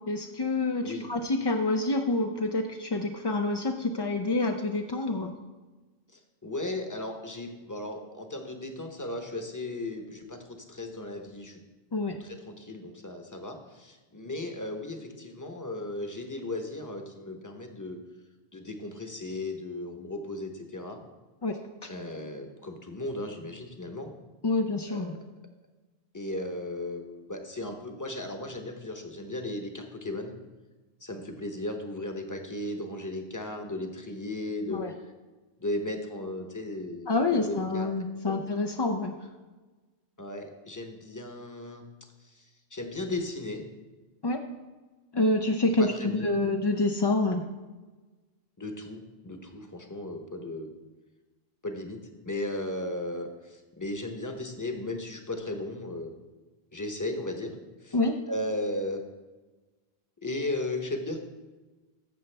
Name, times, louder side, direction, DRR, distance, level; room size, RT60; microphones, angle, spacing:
voice 1, 0.1-5.3 11.9-12.2 21.4-21.6 24.4-25.1 34.7-34.9 37.1-39.1 44.2-44.4 45.1-47.4 57.9-58.2, left 2 dB, 40° left, 4 dB, 0.3 m, -27 dB
voice 2, 6.1-11.6 12.2-18.0 18.5-21.0 21.9-24.1 24.9-25.2 26.1-30.3 31.0-34.9 35.6-37.9 38.2-38.4 40.2-41.8 42.3-43.6 45.8-46.6 48.6-50.7 51.6-52.0 52.2-56.1 56.7-57.5 57.8-58.0 58.3-59.0 60.2-61.2, left 2 dB, 20° left, 4 dB, 0.8 m, -36 dB
13.5 x 6.8 x 3.3 m, 1.2 s
omnidirectional pair, 1.1 m